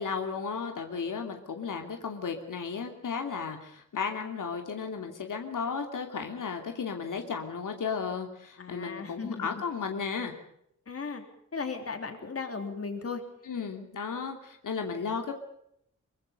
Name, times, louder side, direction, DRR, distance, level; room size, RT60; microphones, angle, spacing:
voice 1, 0.0-10.3 13.5-15.3, left 5 dB, 85° left, 4 dB, 2.8 m, -34 dB
voice 2, 8.6-9.6 10.9-11.2 11.5-13.2, left 5 dB, 50° left, 6 dB, 3.6 m, -36 dB
24.0 x 23.5 x 5.4 m, 0.74 s
wide cardioid pair, 155°, 31 cm